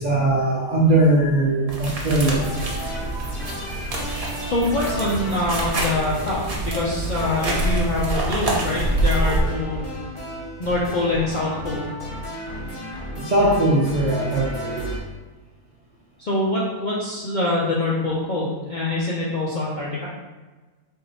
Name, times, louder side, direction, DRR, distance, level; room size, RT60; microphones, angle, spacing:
voice 1, 0.0-2.5 13.2-14.9, right 1 dB, 65° right, -6 dB, 0.4 m, -20 dB
sound 1, 1.7-9.4, right 1 dB, 50° right, 0.9 m, -26 dB
sound 2, 2.3-15.0, equal, 40° left, 1.1 m, -33 dB
voice 2, 4.4-9.9 10.6-11.8 16.2-20.1, left 2 dB, 65° left, -6 dB, 0.4 m, -24 dB
3.9 x 2.7 x 4.1 m, 1.2 s
omnidirectional pair, 1.7 m